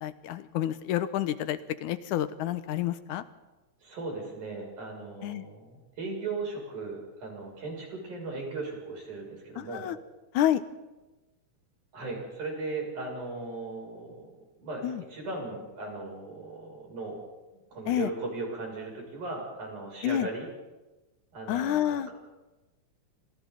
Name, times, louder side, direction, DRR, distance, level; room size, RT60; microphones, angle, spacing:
voice 1, 0.0-3.2 5.2-5.5 9.6-10.0 10.3-10.6 14.8-15.0 17.9-18.1 20.0-20.3 21.5-22.1, left 11 dB, 90° left, 12 dB, 2.4 m, -29 dB
voice 2, 3.8-9.9 11.9-17.2 17.5-20.5 21.3-22.1, right 3 dB, 90° right, -1 dB, 8.2 m, -37 dB
29.5 x 26.0 x 4.0 m, 1.1 s
omnidirectional pair, 3.4 m